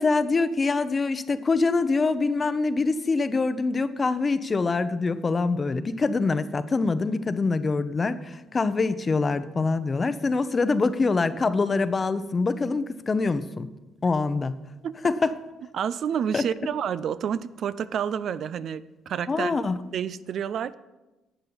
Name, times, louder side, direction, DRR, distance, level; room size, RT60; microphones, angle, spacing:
voice 1, 0.0-13.7 14.0-14.6 15.0-15.3 16.3-16.4 19.3-19.8, left 3 dB, 30° left, 13 dB, 0.7 m, -24 dB
voice 2, 15.7-19.6 19.9-20.7, right 8 dB, 60° right, 16 dB, 0.4 m, -29 dB
11.0 x 8.0 x 5.5 m, 1.0 s
cardioid pair, 90°, 0 cm